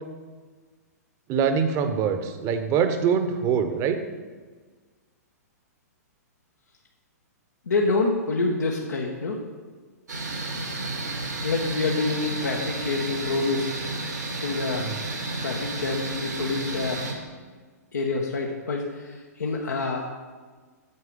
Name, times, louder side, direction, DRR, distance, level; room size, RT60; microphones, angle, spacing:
voice 1, 1.3-4.0 14.9-15.0, right 7 dB, 30° right, 8 dB, 0.9 m, -24 dB
voice 2, 7.7-9.4 11.4-13.7 14.4-14.9 15.4-17.0 17.9-20.1, left 3 dB, 75° left, -1 dB, 1.1 m, -27 dB
sound 1, 10.1-17.1, right 2 dB, 85° right, 2.0 m, -32 dB
8.5 x 6.7 x 5.1 m, 1.4 s
figure-of-eight pair, 115°, 9 cm